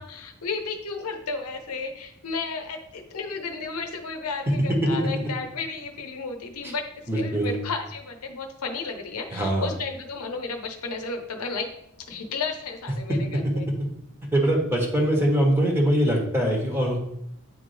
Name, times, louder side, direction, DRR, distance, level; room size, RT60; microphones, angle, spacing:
voice 1, 0.0-11.7 12.0-13.7, left 4 dB, 75° left, 5 dB, 0.8 m, -33 dB
voice 2, 7.1-7.6 9.3-9.7 13.1-13.2 14.3-17.0, right 1 dB, 10° right, -1 dB, 1.3 m, -22 dB
9.2 x 3.4 x 3.4 m, 0.75 s
head